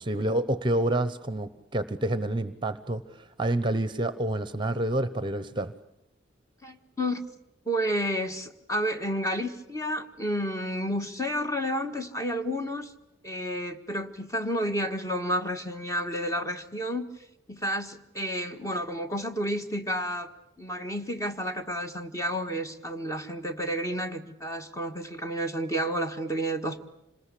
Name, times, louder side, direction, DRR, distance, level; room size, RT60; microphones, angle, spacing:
voice 1, 0.0-5.7, right 1 dB, 25° right, 13 dB, 0.9 m, -28 dB
voice 2, 6.6-7.2 7.7-12.9 13.2-17.1 17.5-20.3 20.6-26.8, equal, 15° left, 6 dB, 1.6 m, -31 dB
27.0 x 20.5 x 8.4 m, 0.83 s
head